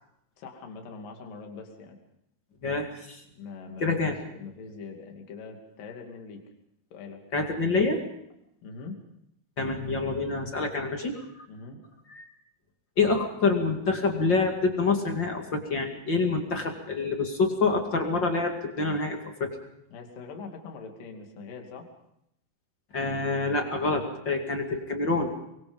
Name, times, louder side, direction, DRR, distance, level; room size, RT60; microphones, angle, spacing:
voice 1, 0.4-2.0 3.3-6.4 6.9-7.2 8.6-9.0 11.5-11.8 19.9-21.9, left 4 dB, 55° left, 3 dB, 4.2 m, -42 dB
voice 2, 2.6-3.2 3.8-4.2 7.3-8.0 9.6-11.4 12.1-12.3 13.0-19.5 22.9-25.3, left 3 dB, 35° left, 4 dB, 2.2 m, -27 dB
24.5 x 23.5 x 5.4 m, 0.77 s
omnidirectional pair, 4.8 m